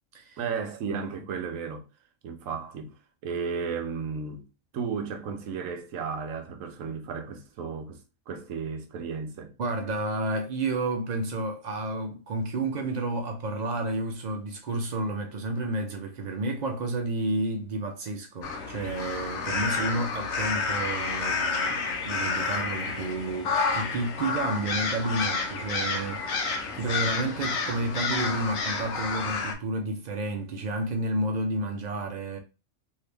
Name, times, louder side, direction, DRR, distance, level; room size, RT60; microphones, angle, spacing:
voice 1, 0.4-1.9 2.2-2.9 3.2-4.5 4.7-8.0 8.3-9.5, right 5 dB, 75° right, 1.0 m, -34 dB
voice 2, 9.6-32.4, right 2 dB, 90° right, 0.3 m, -31 dB
sound 1, 18.4-29.5, left 4 dB, 75° left, 1.1 m, -30 dB
2.8 x 2.7 x 3.3 m
omnidirectional pair, 1.4 m